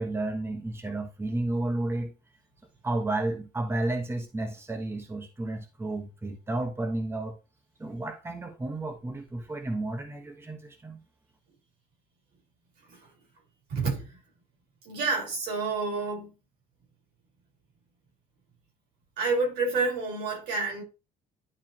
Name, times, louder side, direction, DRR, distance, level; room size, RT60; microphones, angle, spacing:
voice 1, 0.0-2.1 2.8-7.4 7.8-11.0, right 2 dB, 15° right, 1.2 m, -32 dB
voice 2, 13.7-14.2 14.8-16.3 19.2-20.8, right 3 dB, 85° right, 4.4 m, -28 dB
11.0 x 4.3 x 2.9 m
cardioid pair, 110°, 17 cm